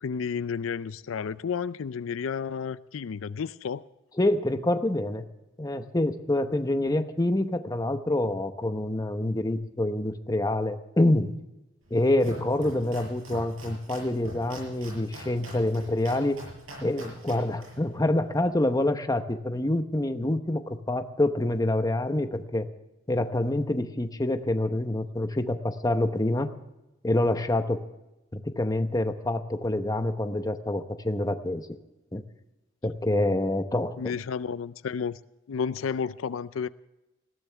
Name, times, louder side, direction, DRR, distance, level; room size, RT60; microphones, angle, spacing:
voice 1, 0.0-3.8 34.0-35.2 35.5-36.7, left 6 dB, 85° left, 0.4 m, -31 dB
voice 2, 4.2-5.2 5.6-11.4 11.9-16.4 16.8-22.7 23.1-26.5 27.0-27.8 28.3-31.7 32.1-32.2 32.8-34.1, left 1 dB, 20° left, 0.9 m, -26 dB
Domestic sounds home sounds, 11.8-18.8, right 1 dB, 85° right, 7.4 m, -44 dB
20.0 x 15.5 x 3.4 m
head